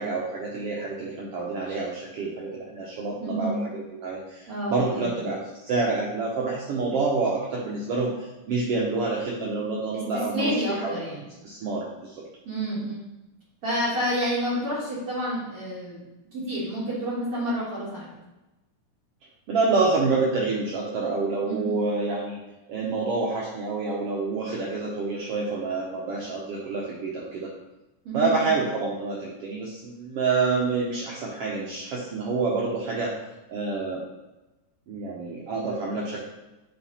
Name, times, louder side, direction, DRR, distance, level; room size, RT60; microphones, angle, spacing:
voice 1, 0.0-3.6 4.0-11.0 11.4-12.2 19.5-22.4 22.7-27.5 28.1-33.1 33.5-34.0 34.9-36.2, right 3 dB, 75° right, -4 dB, 1.4 m, -27 dB
voice 2, 3.2-3.6 4.5-5.2 10.1-11.3 12.5-13.0 13.6-16.0 16.3-18.1 21.5-21.8 28.0-28.4, equal, 50° right, -9 dB, 2.4 m, -29 dB
8.6 x 3.3 x 4.1 m, 1.0 s
omnidirectional pair, 3.6 m